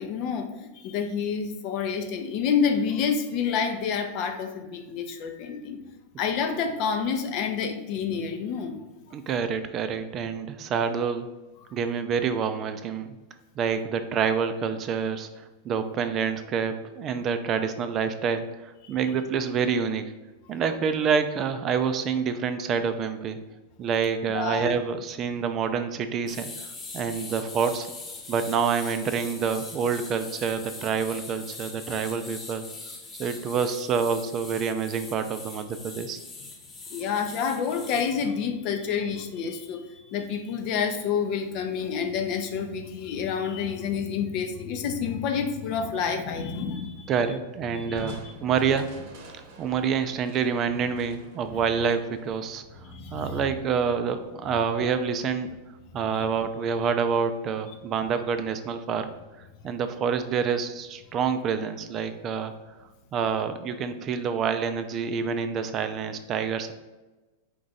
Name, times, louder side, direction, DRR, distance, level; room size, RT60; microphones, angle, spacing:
voice 1, 0.0-5.8 6.2-8.8 18.8-18.9 24.3-24.7 36.9-47.1 47.7-48.3 51.5-51.6 52.8-53.5, left 6 dB, 50° left, 5 dB, 0.6 m, -29 dB
voice 2, 9.1-11.3 11.7-13.1 13.6-20.1 20.5-23.4 23.8-26.5 26.9-27.9 28.3-32.7 33.2-36.2 47.1-48.9 49.6-52.8 53.1-55.5 55.9-59.1 59.6-62.5 63.1-66.7, right 6 dB, 35° right, 9 dB, 0.4 m, -27 dB
sound 1, 26.3-38.3, left 3 dB, 25° left, 0.9 m, -42 dB
Crushing, 48.0-53.3, right 1 dB, 55° right, 0.8 m, -47 dB
4.5 x 2.5 x 4.0 m, 1.1 s
hypercardioid pair, 100°, 0 cm